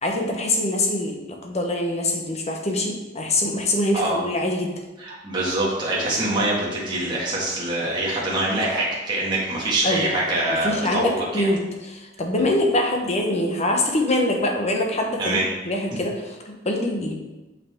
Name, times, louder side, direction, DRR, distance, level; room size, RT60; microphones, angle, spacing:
voice 1, 0.0-1.2 1.4-4.7 9.8-10.0 10.5-17.1, left 1 dB, 35° left, 2 dB, 1.0 m, -24 dB
voice 2, 5.0-11.5 15.2-15.4, right 1 dB, 25° right, -6 dB, 1.7 m, -24 dB
6.7 x 5.5 x 3.6 m, 1.1 s
head